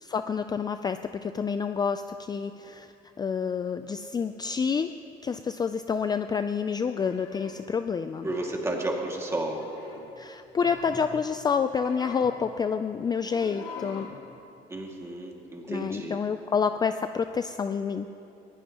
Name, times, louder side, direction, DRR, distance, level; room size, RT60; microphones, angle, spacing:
voice 1, 0.0-2.9 3.2-4.9 5.2-8.3 10.2-14.1 15.7-18.1, left 6 dB, 25° left, 9 dB, 0.4 m, -28 dB
sound 1, 6.9-7.6 8.3-8.6 9.4-10.1 10.5-11.1 11.6-12.4 13.1-14.2, left 5 dB, 85° left, 2.0 m, -43 dB
voice 2, 8.2-9.6 14.7-16.2, right 1 dB, 15° right, 0 dB, 2.2 m, -32 dB
21.0 x 15.5 x 3.0 m, 2.7 s
cardioid pair, 110°, 17 cm